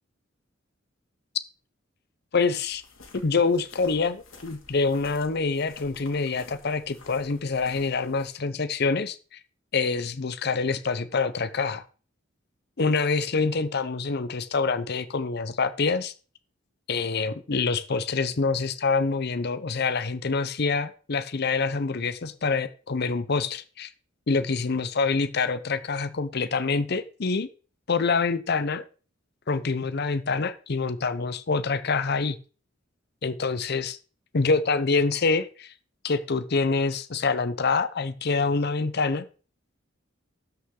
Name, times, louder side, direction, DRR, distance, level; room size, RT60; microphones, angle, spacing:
voice 1, 2.3-2.8 3.2-9.4 9.7-11.8 12.8-16.1 16.9-23.9 24.3-27.5 27.9-28.8 29.5-32.4 33.2-34.0 34.3-35.7 36.0-39.2, left 4 dB, 55° left, 0.7 m, -26 dB
sound 1, 2.7-8.3, left 3 dB, 85° left, 2.3 m, -51 dB
12.5 x 5.7 x 3.8 m
head